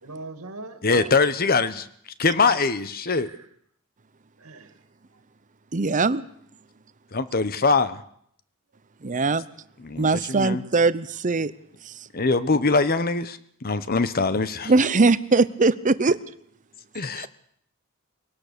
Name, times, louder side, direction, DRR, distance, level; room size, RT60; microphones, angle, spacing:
voice 1, 0.0-1.1 3.1-3.5 4.4-4.8, right 3 dB, 85° right, 8 dB, 2.3 m, -40 dB
voice 2, 0.8-1.9 2.2-3.3 7.1-8.0 9.8-10.6 12.1-14.7 16.9-17.3, left 4 dB, 45° left, 13 dB, 1.1 m, -23 dB
voice 3, 5.7-6.2 9.0-9.4 10.0-11.5 11.9-12.0 14.7-16.2 17.2-17.3, right 3 dB, 35° right, 15 dB, 0.8 m, -21 dB
23.0 x 18.0 x 6.8 m, 0.68 s
head